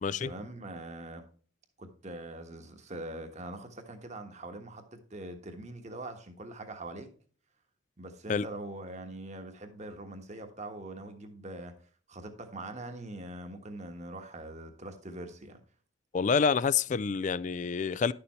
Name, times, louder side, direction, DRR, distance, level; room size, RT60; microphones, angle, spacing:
voice 1, 0.2-1.2 1.8-7.1 8.0-11.8 12.1-15.6, right 1 dB, 35° right, 1.3 m, -43 dB
voice 2, 16.1-18.1, left 5 dB, 40° left, 0.3 m, -27 dB
11.0 x 6.9 x 3.1 m
head